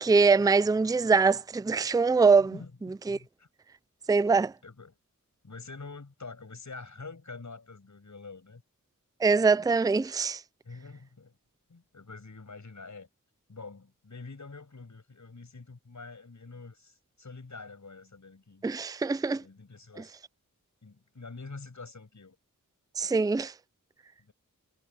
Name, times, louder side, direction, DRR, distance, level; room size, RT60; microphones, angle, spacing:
voice 1, 0.0-2.6 3.1-3.2 4.1-4.5 9.2-10.4 18.6-19.4 23.0-23.5, right 4 dB, 10° right, 0.4 m, -23 dB
voice 2, 2.5-3.5 4.6-5.0 5.4-8.6 10.6-11.3 11.7-13.1 13.5-18.6 19.4-20.1 20.8-22.4 24.2-24.3, left 3 dB, 55° left, 6.5 m, -46 dB
wide cardioid pair, 85°, 34 cm